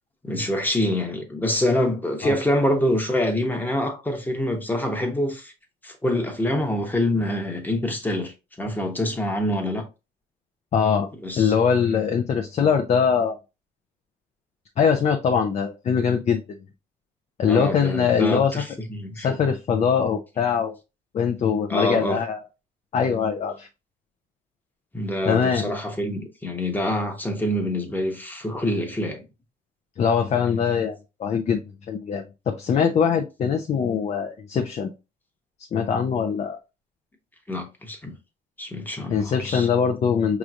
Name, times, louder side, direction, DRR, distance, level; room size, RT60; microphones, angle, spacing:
voice 1, 0.2-5.5 5.8-9.8 11.2-11.5 17.5-19.4 21.7-22.2 24.9-29.2 30.6-30.7 37.5-38.1 38.6-39.7, left 1 dB, 10° left, 1.0 m, -26 dB
voice 2, 10.7-11.1 11.4-13.4 14.8-16.6 17.4-18.5 19.1-20.7 21.1-22.4 22.9-23.7 25.3-25.7 30.0-34.9 35.7-36.6 39.1-40.4, left 6 dB, 40° left, 0.5 m, -22 dB
5.0 x 3.0 x 2.5 m
cardioid pair, 110°, 17 cm